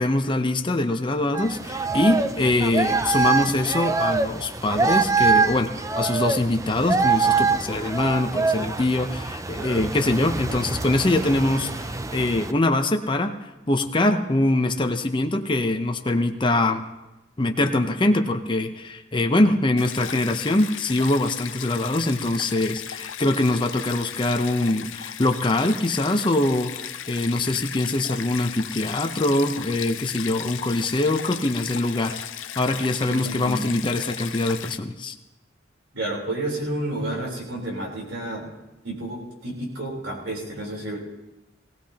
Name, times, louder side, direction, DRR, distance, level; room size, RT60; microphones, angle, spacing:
voice 1, 0.0-13.3 13.7-16.8 17.4-32.3 32.6-35.1, left 2 dB, 25° left, 5 dB, 0.7 m, -23 dB
sound 1, 1.3-12.5, right 4 dB, 15° right, 0.4 m, -25 dB
voice 2, 9.6-9.9 33.0-33.7 35.9-38.5 38.8-41.0, right 1 dB, 75° right, -2 dB, 3.9 m, -31 dB
Stream, 19.8-34.8, left 10 dB, 80° left, 0.6 m, -36 dB
19.5 x 16.5 x 2.9 m, 0.99 s
head